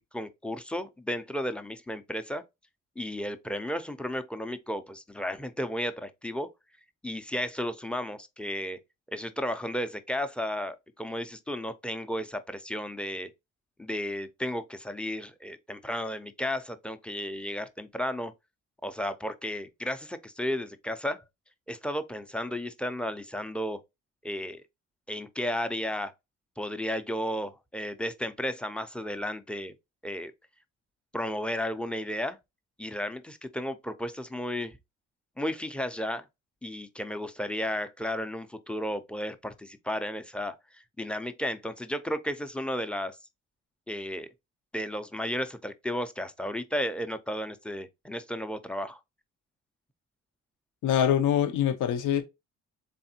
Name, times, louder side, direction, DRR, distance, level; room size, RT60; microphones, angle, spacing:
voice 1, 0.0-2.4 3.0-6.5 7.0-8.8 9.1-13.3 13.8-18.3 18.8-21.2 21.7-23.8 24.2-24.6 25.1-26.1 26.6-29.7 30.0-30.3 31.1-32.4 32.8-34.8 35.4-36.3 36.6-43.2 43.9-44.3 44.7-49.0, equal, 5° left, 0.6 m, -33 dB
voice 2, 50.8-52.2, left 9 dB, 85° left, 0.9 m, -24 dB
4.0 x 3.4 x 2.8 m
cardioid pair, 90°, 30 cm